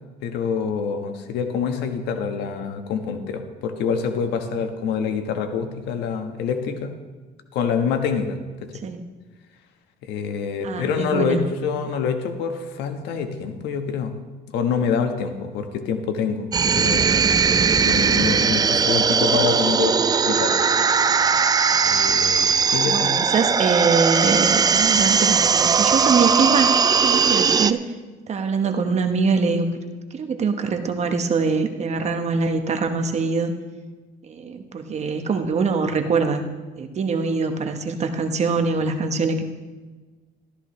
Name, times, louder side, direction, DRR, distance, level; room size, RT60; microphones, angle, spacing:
voice 1, 0.2-6.9 7.5-8.4 10.0-14.1 14.5-16.5 16.8-20.6 21.9-23.1, left 6 dB, 85° left, 6 dB, 1.3 m, -26 dB
voice 2, 10.6-11.4 22.8-27.8 28.3-29.7 30.1-33.6 34.3-36.4 36.8-39.4, right 4 dB, 40° right, 7 dB, 1.1 m, -23 dB
sound 1, 16.5-27.7, right 6 dB, 25° right, 0.4 m, -19 dB
13.5 x 13.0 x 3.2 m, 1.3 s
cardioid pair, 110°, 17 cm